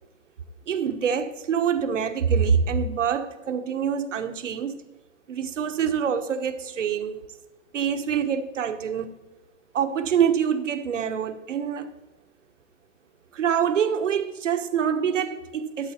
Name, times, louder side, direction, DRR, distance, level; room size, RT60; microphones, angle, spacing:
voice 1, 0.7-4.8 5.3-7.2 7.7-9.1 9.7-11.9 13.3-15.9, right 7 dB, 65° right, 1.2 m, -25 dB
13.5 x 8.1 x 4.3 m
hypercardioid pair, 155°, 39 cm